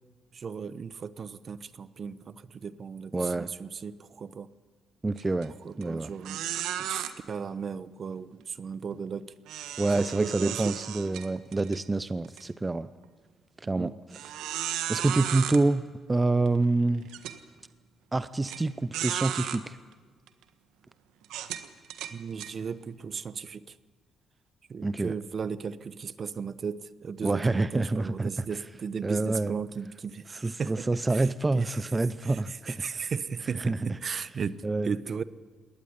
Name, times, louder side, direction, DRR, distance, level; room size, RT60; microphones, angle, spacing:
voice 1, 0.3-4.5 5.6-6.4 6.8-9.3 10.0-10.8 13.6-13.9 22.1-23.8 24.7-31.3 31.5-31.7 32.2-35.2, right 6 dB, 45° right, 16 dB, 1.0 m, -36 dB
voice 2, 3.1-3.5 5.0-6.1 9.8-12.9 13.6-13.9 14.9-17.1 18.1-19.8 24.8-25.1 27.2-28.3 29.0-29.6 30.3-33.1 33.6-33.9 34.6-34.9, right 2 dB, 20° right, 14 dB, 0.7 m, -27 dB
sound 1, 5.2-5.4 5.8-5.9 6.2-7.1 9.5-11.8 12.2-12.4 13.0-13.1 14.1-15.6 16.5-16.6 17.1-17.4 18.4-18.6 18.9-19.6 20.3-20.4 21.2-22.5, right 11 dB, 90° right, 1.5 m, -34 dB
20.5 x 18.5 x 9.8 m, 1.5 s
cardioid pair, 90°, 0 cm